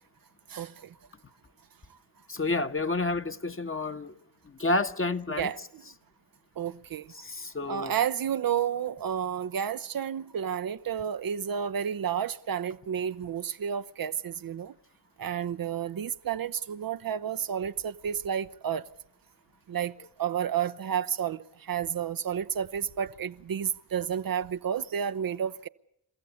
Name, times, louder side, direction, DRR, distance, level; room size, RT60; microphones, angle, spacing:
voice 1, 2.3-4.1 4.4-5.5 7.1-7.9, left 2 dB, 30° left, 1.4 m, -30 dB
voice 2, 6.6-7.1 7.7-14.7 15.2-18.8 19.7-19.9 20.2-21.4 21.7-25.7, right 8 dB, 55° right, 0.8 m, -31 dB
29.5 x 15.0 x 8.4 m
supercardioid pair, 40°, 42 cm